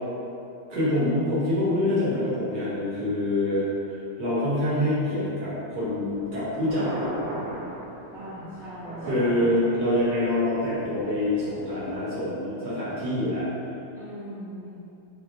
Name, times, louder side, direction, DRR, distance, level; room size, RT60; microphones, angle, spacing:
voice 1, 0.7-3.7 4.2-6.9 9.1-13.5, left 1 dB, 60° right, -10 dB, 1.2 m, -25 dB
Thunder, 5.9-11.9, right 1 dB, 80° right, 1.5 m, -37 dB
voice 2, 8.1-9.7 13.9-14.9, equal, 75° left, -14 dB, 0.5 m, -40 dB
3.3 x 3.3 x 2.5 m, 2.7 s
omnidirectional pair, 2.3 m